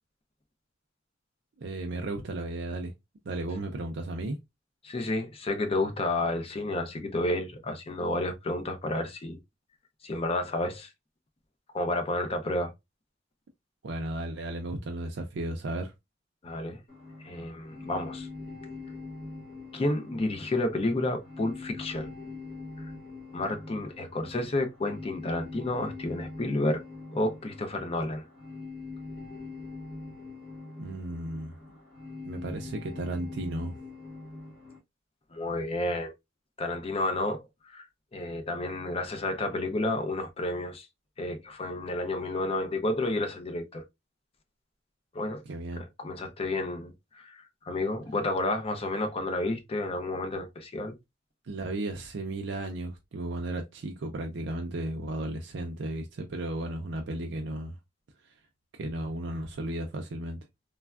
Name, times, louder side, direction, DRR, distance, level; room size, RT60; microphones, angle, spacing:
voice 1, 1.6-2.9 3.3-4.4 13.8-15.9 30.8-31.6 32.2-33.8 45.5-45.8 51.4-57.8 58.7-60.4, right 1 dB, 65° right, 0.4 m, -34 dB
voice 2, 4.8-9.4 10.0-10.9 11.7-12.7 16.4-16.8 17.2-18.3 19.7-22.1 23.3-26.8 27.1-28.2 35.3-36.1 36.6-37.4 37.7-37.9 38.1-40.9 41.2-43.8 45.1-45.4 45.8-51.0, left 2 dB, 30° left, 0.5 m, -31 dB
sound 1, 16.9-34.8, left 3 dB, 50° left, 1.5 m, -43 dB
3.3 x 2.2 x 2.2 m
head